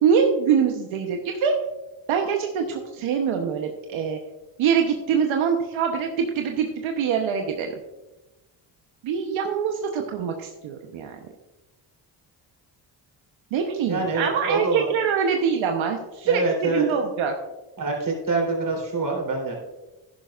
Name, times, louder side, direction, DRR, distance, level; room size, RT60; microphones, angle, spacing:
voice 1, 0.0-1.5 2.1-4.2 4.6-7.7 9.0-11.2 13.5-17.3, right 7 dB, 85° right, 3 dB, 1.1 m, -24 dB
voice 2, 13.9-14.9 16.2-16.8 17.8-19.5, right 3 dB, 45° right, 0 dB, 3.7 m, -25 dB
11.0 x 10.5 x 2.5 m, 1.0 s
cardioid pair, 90°, 46 cm